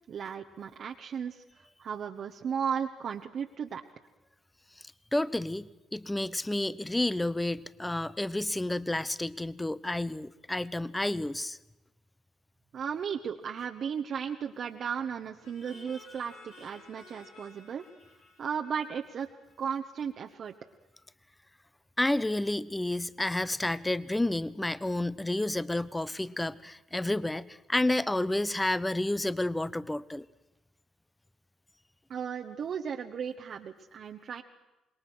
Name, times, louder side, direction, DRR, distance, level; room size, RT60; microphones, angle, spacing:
voice 1, 0.1-3.8 12.7-17.8 18.4-19.3 19.6-20.6 32.1-34.4, right 7 dB, 60° right, 3 dB, 1.3 m, -35 dB
voice 2, 4.8-11.6 22.0-30.3, left 1 dB, 15° left, 18 dB, 1.0 m, -30 dB
sound 1, 15.4-20.0, left 4 dB, 85° left, 4.2 m, -56 dB
26.5 x 21.5 x 6.3 m, 1.0 s
hypercardioid pair, 55°, 0 cm